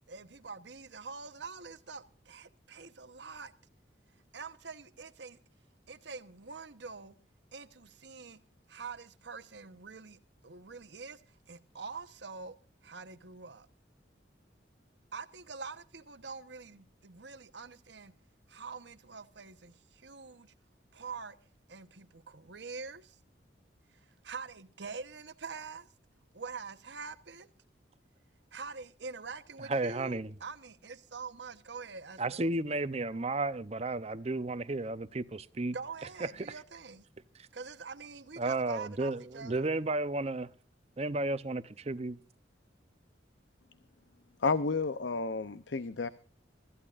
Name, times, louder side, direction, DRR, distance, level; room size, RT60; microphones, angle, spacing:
voice 1, 0.0-3.5 4.3-5.4 5.9-7.2 7.5-8.4 8.7-12.5 12.8-13.7 15.1-18.1 18.5-20.5 20.9-21.3 21.7-23.2 23.9-25.9 26.3-27.5 28.5-32.5 35.7-37.1 37.5-39.7, right 4 dB, 70° right, 1.0 m, -45 dB
voice 2, 29.7-30.3 32.2-35.8 38.4-40.5 41.0-42.2, right 2 dB, 35° right, 0.7 m, -33 dB
voice 3, 44.4-46.1, left 4 dB, 80° left, 0.7 m, -31 dB
24.5 x 14.0 x 2.5 m
head